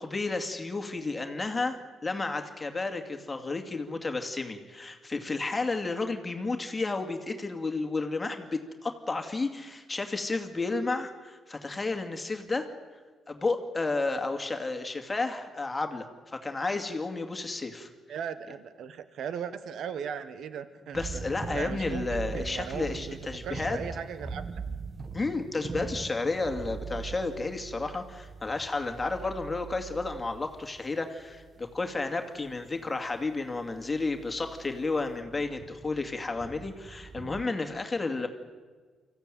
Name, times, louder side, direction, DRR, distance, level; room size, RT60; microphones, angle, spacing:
voice 1, 0.0-12.7 13.3-17.9 20.9-23.8 25.1-38.3, left 3 dB, 20° left, 4 dB, 2.4 m, -32 dB
voice 2, 18.1-21.2 21.5-22.1 22.3-23.2 23.4-24.8, right 7 dB, 70° right, 12 dB, 1.2 m, -38 dB
sound 1, 20.9-32.2 32.5-32.8 33.1-33.2 33.6-37.5, right 5 dB, 35° right, 1.1 m, -41 dB
24.5 x 15.0 x 9.2 m, 1.5 s
cardioid pair, 90°, 0 cm